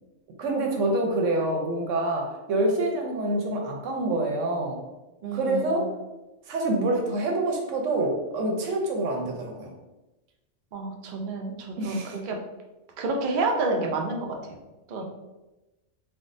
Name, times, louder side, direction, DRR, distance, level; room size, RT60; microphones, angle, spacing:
voice 1, 0.4-4.8 5.3-5.9 6.5-9.7 11.8-12.2, right 2 dB, 80° right, 1 dB, 1.0 m, -26 dB
voice 2, 5.2-5.8 10.7-12.4 13.0-14.6 14.9-15.0, right 3 dB, 65° right, 1 dB, 0.5 m, -29 dB
3.5 x 2.1 x 2.5 m, 1.0 s
omnidirectional pair, 1.3 m